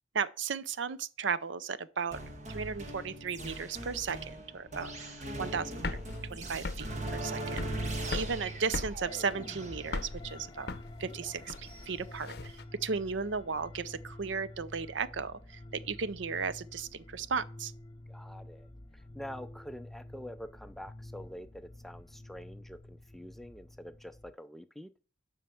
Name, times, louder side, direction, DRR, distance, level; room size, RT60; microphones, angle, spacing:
voice 1, 0.1-2.2 2.5-7.6 8.1-10.7 11.0-12.5 12.8-17.7, right 5 dB, 80° right, 0.6 m, -35 dB
sound 1, 2.1-11.8, right 1 dB, 40° right, 1.4 m, -40 dB
sound 2, 5.5-12.6, left 3 dB, 55° left, 0.7 m, -39 dB
sound 3, 9.0-24.3, left 1 dB, 20° left, 0.7 m, -49 dB
voice 2, 18.1-24.9, equal, ahead, 0.4 m, -46 dB
7.5 x 5.7 x 7.0 m
head